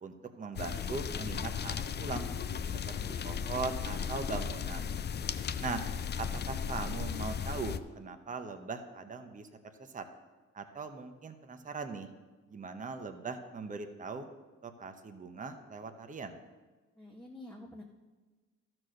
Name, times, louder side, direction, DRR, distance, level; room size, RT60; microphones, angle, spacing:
voice 1, 0.0-2.3 2.9-3.0 3.2-5.0 5.6-5.8 6.2-9.5 9.8-10.0 10.5-12.1 12.5-14.3 14.6-16.4, right 4 dB, 25° right, 7 dB, 0.9 m, -40 dB
sound 1, 0.6-7.8, left 7 dB, 35° left, 0.5 m, -36 dB
voice 2, 16.9-17.8, left 1 dB, 5° left, -2 dB, 1.0 m, -49 dB
13.0 x 4.5 x 6.3 m, 1.2 s
cardioid pair, 90°, 30 cm